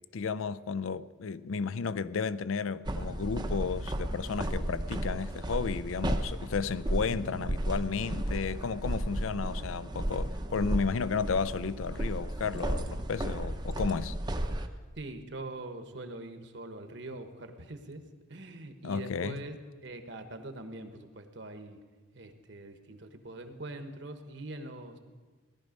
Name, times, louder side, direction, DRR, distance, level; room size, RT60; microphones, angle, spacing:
voice 1, 0.1-14.2 18.8-19.4, left 5 dB, 85° left, 0.5 m, -33 dB
sound 1, 2.9-14.7, right 1 dB, 20° right, 0.6 m, -34 dB
voice 2, 15.0-18.0 18.3-19.6 19.8-21.8 22.1-25.0, right 2 dB, 60° right, 1.2 m, -43 dB
17.5 x 12.0 x 5.2 m
head